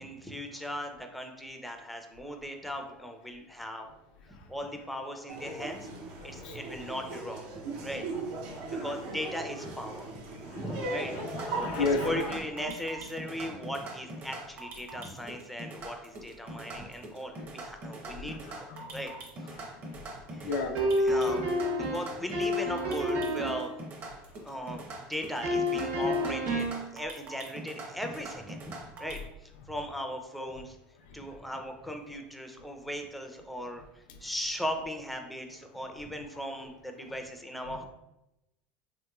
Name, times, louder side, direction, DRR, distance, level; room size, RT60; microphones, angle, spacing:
voice 1, 0.0-3.9 4.3-5.9 6.2-8.0 8.8-10.1 10.5-19.1 19.4-19.5 20.3-20.5 21.0-21.4 21.7-23.7 24.4-24.8 25.1-28.6 29.0-30.8 31.1-33.8 34.2-37.8, equal, ahead, 4 dB, 0.4 m, -38 dB
Laughter, 5.3-12.2, right 3 dB, 80° right, 0.6 m, -38 dB
voice 2, 6.2-6.6 8.5-8.9 10.3-10.6 11.1-12.4 16.5-16.6 17.4-17.5 18.1-19.1 19.5-20.8 24.1-24.5 29.6-29.7 31.0-31.4 32.8-32.9 36.0-36.1 36.6-36.7 37.0-37.1 37.7-37.8, left 3 dB, 85° left, 4 dB, 0.4 m, -36 dB
sound 1, 11.2-29.2, right 2 dB, 45° right, 0.7 m, -43 dB
sound 2, 20.8-23.8 25.4-26.9, left 1 dB, 60° right, 1.1 m, -29 dB
2.9 x 2.9 x 2.3 m, 0.90 s
supercardioid pair, 115°, 5 cm